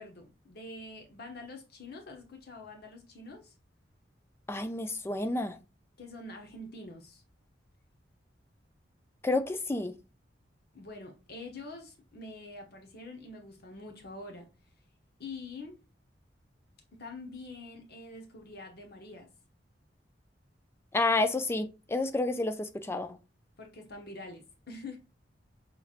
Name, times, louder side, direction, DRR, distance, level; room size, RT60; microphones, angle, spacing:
voice 1, 0.0-3.5 6.0-7.2 10.7-14.5 15.2-15.8 17.0-19.3 23.6-25.0, left 2 dB, 55° left, 0.9 m, -45 dB
voice 2, 4.5-5.6 9.2-9.9 20.9-23.2, left 2 dB, 15° left, 0.3 m, -30 dB
5.7 x 3.2 x 2.4 m
head